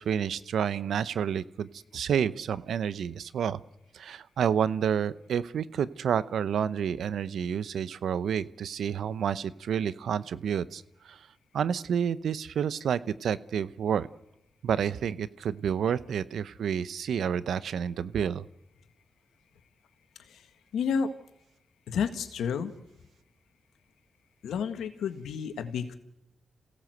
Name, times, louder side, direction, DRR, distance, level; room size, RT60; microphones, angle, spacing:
voice 1, 0.0-1.7 1.9-3.6 3.9-10.8 11.1-11.2 11.5-14.1 14.6-18.5, right 8 dB, 80° right, 16 dB, 0.8 m, -29 dB
voice 2, 20.7-21.1 21.9-22.7 24.4-25.9, left 6 dB, 85° left, 9 dB, 1.7 m, -30 dB
27.0 x 17.0 x 7.9 m, 0.88 s
supercardioid pair, 45°, 0 cm